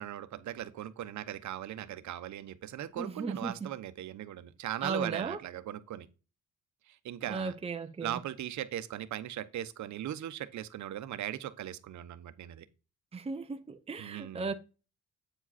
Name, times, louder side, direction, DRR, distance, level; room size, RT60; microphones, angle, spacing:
voice 1, 0.0-6.1 6.9-7.5 8.0-12.7 14.0-14.5, right 12 dB, 70° right, 1.0 m, -39 dB
voice 2, 3.0-3.7 4.8-5.4 7.3-8.1 13.1-14.5, right 4 dB, 20° right, 0.7 m, -36 dB
8.9 x 4.9 x 4.2 m
cardioid pair, 90°, 30 cm